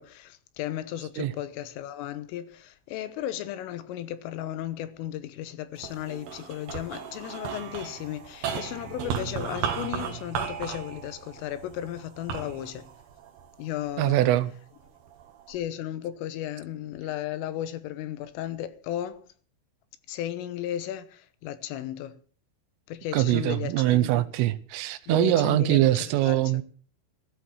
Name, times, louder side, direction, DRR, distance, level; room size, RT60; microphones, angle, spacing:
voice 1, 0.0-12.9 13.6-14.3 15.5-19.3 20.1-22.2 22.9-24.2 25.1-26.6, left 12 dB, 80° left, 3.5 m, -35 dB
sound 1, 5.8-14.2 14.8-15.6, right 7 dB, 60° right, 3.6 m, -35 dB
voice 2, 14.0-14.5 23.1-26.6, right 15 dB, 80° right, 3.4 m, -23 dB
14.5 x 14.0 x 6.3 m
omnidirectional pair, 6.0 m